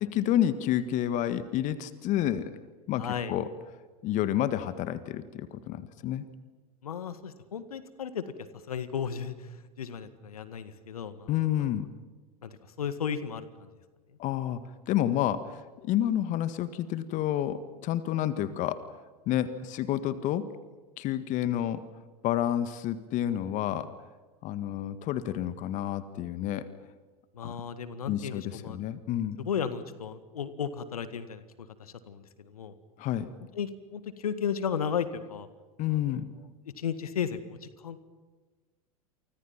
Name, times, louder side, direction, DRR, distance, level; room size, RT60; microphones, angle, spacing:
voice 1, 0.0-2.5 2.9-3.5 4.0-6.2 11.3-11.9 14.2-14.6 14.9-18.9 19.3-20.5 21.0-21.8 22.2-23.9 24.4-26.7 27.4-27.5 28.1-29.4 33.0-33.3 35.8-36.3, left 11 dB, 40° left, 13 dB, 1.6 m, -29 dB
voice 2, 3.0-3.3 6.8-8.2 8.7-9.3 9.8-11.3 12.4-12.5 12.8-13.5 27.4-28.8 29.5-31.4 31.8-32.2 32.5-32.7 33.6-35.5 36.8-37.6 37.8-38.0, left 7 dB, 75° left, 12 dB, 1.8 m, -34 dB
29.5 x 25.0 x 5.9 m, 1.3 s
figure-of-eight pair, 85°, 19 cm